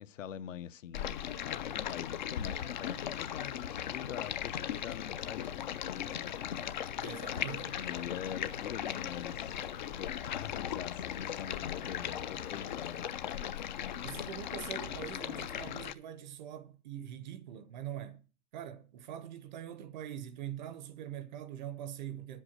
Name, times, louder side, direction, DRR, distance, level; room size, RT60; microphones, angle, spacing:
voice 1, 0.0-5.6 5.9-6.3 7.7-9.7 10.0-13.4, left 9 dB, 60° left, 0.8 m, -44 dB
Stream, 0.9-15.9, left 9 dB, 35° left, 0.4 m, -38 dB
sound 1, 5.2-15.7, left 9 dB, 80° left, 1.2 m, -57 dB
voice 2, 7.0-7.8 14.0-18.2 18.5-22.4, right 10 dB, 30° right, 0.6 m, -43 dB
9.8 x 7.8 x 6.4 m
hypercardioid pair, 140°, 44 cm